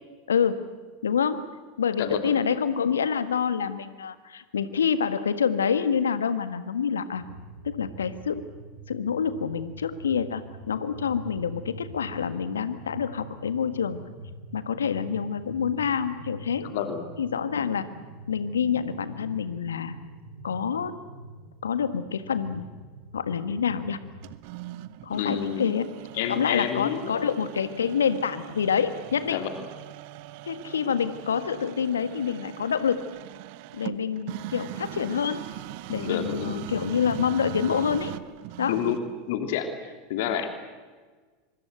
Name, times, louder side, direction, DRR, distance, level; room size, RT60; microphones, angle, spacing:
voice 1, 1.0-1.4 1.8-7.2 7.6-8.4 8.9-14.0 14.5-16.7 17.2-17.9 18.3-20.0 20.4-20.9 21.6-22.7 23.1-24.0 25.0-25.9 26.3-29.4 30.5-33.0 33.7-35.4 35.9-38.1 38.6-38.8, left 7 dB, 80° left, 12 dB, 1.6 m, -27 dB
sound 1, 7.1-24.3, right 2 dB, 80° right, 6.4 m, -44 dB
voice 2, 16.6-17.0 25.1-25.6 26.1-27.1 29.3-29.5 36.0-36.6 38.7-39.0 39.3-40.5, left 9 dB, 60° left, 7 dB, 2.9 m, -29 dB
sound 2, 24.2-39.2, right 17 dB, 55° right, 1.0 m, -40 dB
25.5 x 24.5 x 8.0 m, 1.4 s
figure-of-eight pair, 85°, 0 cm